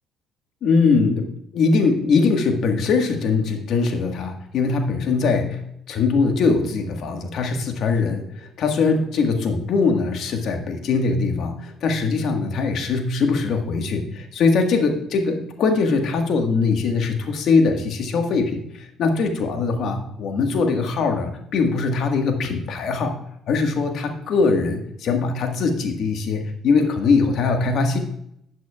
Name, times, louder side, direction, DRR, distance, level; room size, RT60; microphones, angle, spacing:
voice 1, 0.6-5.6 5.9-23.1 23.5-28.0, left 4 dB, 65° left, 4 dB, 1.5 m, -21 dB
12.0 x 8.0 x 2.3 m, 0.75 s
supercardioid pair, 70°, 0 cm